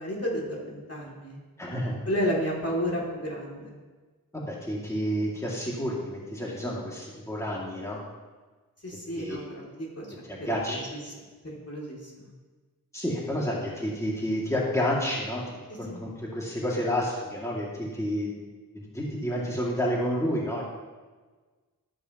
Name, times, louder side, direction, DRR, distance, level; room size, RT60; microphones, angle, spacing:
voice 1, 0.0-1.4 2.0-3.7 8.8-10.1 10.4-11.1 11.4-12.3 15.9-16.0, equal, 40° left, -3 dB, 2.8 m, -32 dB
voice 2, 1.6-2.0 4.3-8.0 9.1-9.4 10.3-10.8 12.9-18.5 18.7-20.6, equal, 10° left, -5 dB, 2.4 m, -30 dB
12.0 x 8.4 x 3.0 m, 1.3 s
cardioid pair, 45°, 37 cm